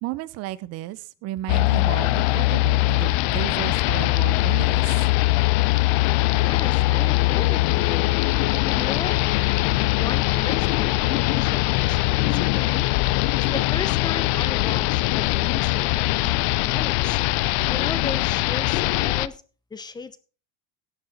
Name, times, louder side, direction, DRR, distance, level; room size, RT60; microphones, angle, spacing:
voice 1, 0.0-5.0, right 16 dB, 45° right, 17 dB, 0.8 m, -33 dB
sound 1, 1.5-19.3, left 19 dB, 70° left, 0.6 m, -21 dB
voice 2, 6.4-8.1 8.5-9.2 10.0-12.9 13.4-16.4 16.6-17.2 17.7-19.4 19.7-20.2, left 4 dB, 10° left, 14 dB, 0.8 m, -36 dB
17.5 x 6.8 x 4.2 m, 0.36 s
cardioid pair, 145°, 33 cm